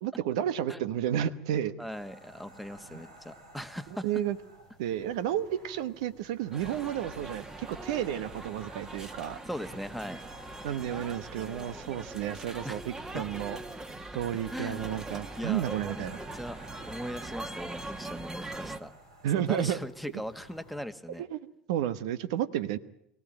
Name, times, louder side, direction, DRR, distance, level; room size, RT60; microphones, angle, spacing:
voice 1, 0.0-1.7 4.0-4.4 4.8-9.4 10.6-13.6 14.1-16.2 19.2-19.8 21.2-21.4 21.7-22.8, right 11 dB, 75° right, 15 dB, 1.0 m, -31 dB
voice 2, 1.8-4.1 9.4-10.2 12.6-12.9 13.1-13.4 13.9-14.0 14.5-14.9 15.4-15.7 15.9-16.1 16.3-16.6 16.8-18.9 19.5-21.2, equal, ahead, 11 dB, 1.5 m, -39 dB
sound 1, 1.9-20.8, right 1 dB, 90° right, 5.5 m, -54 dB
sound 2, 6.5-18.8, right 2 dB, 20° right, 1.8 m, -42 dB
23.0 x 16.5 x 9.0 m, 0.76 s
hypercardioid pair, 75°, 3 cm